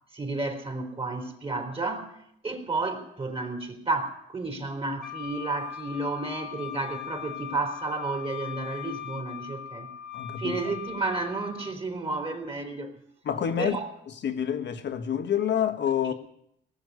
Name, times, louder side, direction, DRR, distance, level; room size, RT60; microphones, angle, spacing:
voice 1, 0.1-2.2 2.4-9.9 10.4-12.9 13.6-13.9, right 3 dB, 30° right, 3.5 m, -32 dB
Wind instrument woodwind instrument, 5.0-11.8, left 10 dB, ahead, 1.7 m, -40 dB
voice 2, 10.1-10.6 13.2-13.8 14.2-16.1, left 9 dB, 60° left, 1.4 m, -27 dB
18.5 x 7.3 x 9.4 m
cardioid pair, 90°, 20 cm